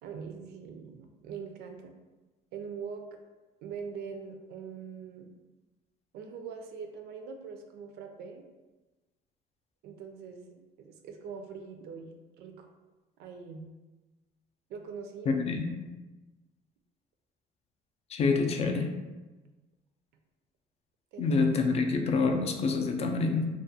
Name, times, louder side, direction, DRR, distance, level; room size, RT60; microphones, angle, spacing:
voice 1, 0.0-1.9 2.5-3.2 3.6-5.3 6.1-8.4 9.8-12.1 12.4-12.7 13.2-13.7 14.7-15.4 21.1-21.4, right 6 dB, 75° right, 4 dB, 0.4 m, -42 dB
voice 2, 15.3-15.6 18.1-18.9 21.2-23.5, left 4 dB, 40° left, 4 dB, 0.4 m, -27 dB
2.4 x 2.2 x 2.7 m, 1.1 s
cardioid pair, 110°, 17 cm